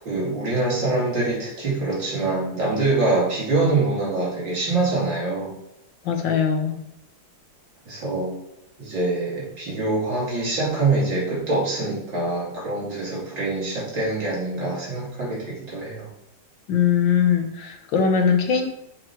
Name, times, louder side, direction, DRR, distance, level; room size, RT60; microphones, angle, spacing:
voice 1, 0.0-5.6 7.8-8.3 8.8-16.1, right 2 dB, 80° right, -6 dB, 3.4 m, -24 dB
voice 2, 6.1-6.8 16.7-18.7, left 7 dB, 85° left, 4 dB, 1.8 m, -21 dB
6.5 x 5.4 x 4.5 m, 0.87 s
omnidirectional pair, 2.0 m